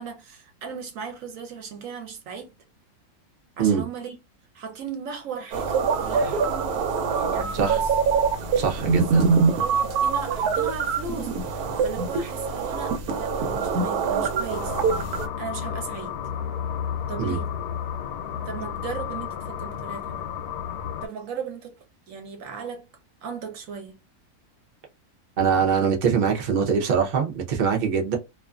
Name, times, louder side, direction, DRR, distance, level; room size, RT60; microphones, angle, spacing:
voice 1, 0.0-2.5 3.6-4.2 4.5-6.4 7.1-7.9 9.0-14.7 15.4-16.1 17.1-17.5 18.4-20.2 21.0-21.8 22.1-22.9 23.2-24.0 26.3-26.4, right 6 dB, 65° right, 1.0 m, -37 dB
sound 1, 5.5-15.3, right 5 dB, 85° right, 1.1 m, -24 dB
voice 2, 8.6-9.3 17.2-17.4 25.4-28.2, right 6 dB, 45° right, 0.6 m, -23 dB
sound 2, 14.5-21.1, left 8 dB, 85° left, 1.1 m, -32 dB
2.4 x 2.4 x 2.3 m
omnidirectional pair, 1.6 m